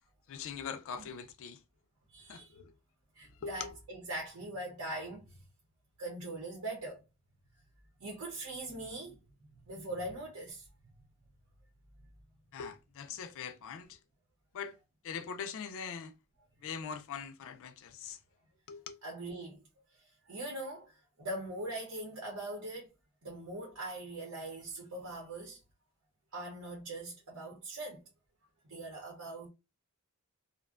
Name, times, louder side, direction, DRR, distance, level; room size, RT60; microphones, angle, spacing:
voice 1, 0.3-1.6 2.3-2.7 3.4-3.8 12.5-14.0 14.5-14.7 15.0-16.1 16.6-18.2 18.7-19.0, left 6 dB, 60° left, 0.3 m, -42 dB
voice 2, 2.1-2.5 3.2-5.4 6.0-7.0 8.0-9.2 9.5-10.7 19.0-19.6 20.3-22.9 23.2-25.6 26.3-28.0 28.7-29.5, right 1 dB, 70° right, 0.8 m, -41 dB
2.5 x 2.1 x 2.4 m
head